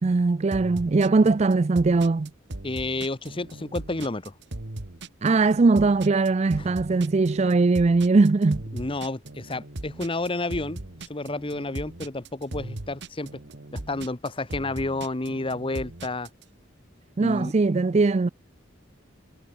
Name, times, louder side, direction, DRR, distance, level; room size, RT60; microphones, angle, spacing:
voice 1, 0.0-2.3 5.2-8.6 17.2-18.3, right 3 dB, 35° right, 0.4 m, -20 dB
sound 1, 0.5-16.4, right 2 dB, 60° right, 1.7 m, -38 dB
voice 2, 2.6-4.3 8.7-10.8 11.1-13.3 13.7-16.3 17.2-17.5, left 2 dB, 25° left, 1.0 m, -30 dB
head